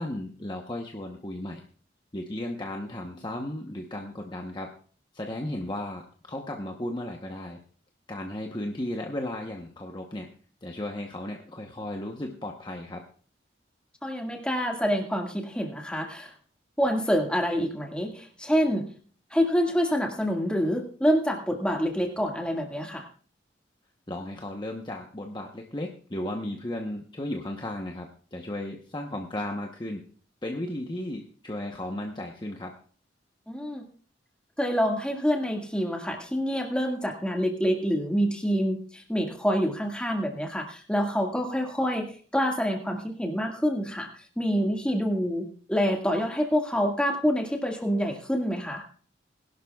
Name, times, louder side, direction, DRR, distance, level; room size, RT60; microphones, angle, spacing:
voice 1, 0.0-1.6 2.1-4.7 5.1-7.6 8.1-10.3 10.6-13.0 24.1-30.0 30.4-32.8, left 1 dB, 25° left, 2 dB, 0.9 m, -35 dB
voice 2, 14.0-16.3 16.8-18.9 19.3-23.1 33.5-33.8 34.6-48.9, equal, 5° left, 1 dB, 1.8 m, -27 dB
21.0 x 11.5 x 2.4 m, 0.43 s
head